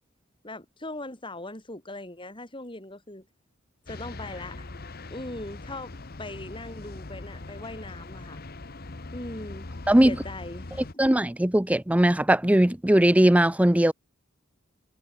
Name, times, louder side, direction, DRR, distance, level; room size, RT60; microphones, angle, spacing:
voice 1, 0.4-3.2 3.9-4.7 5.1-8.4 9.1-9.7 10.0-10.9, left 2 dB, 25° left, 6.5 m, -39 dB
sound 1, 3.8-10.9, left 2 dB, 50° left, 1.2 m, -41 dB
voice 2, 11.0-13.9, right 1 dB, 5° right, 0.6 m, -19 dB
head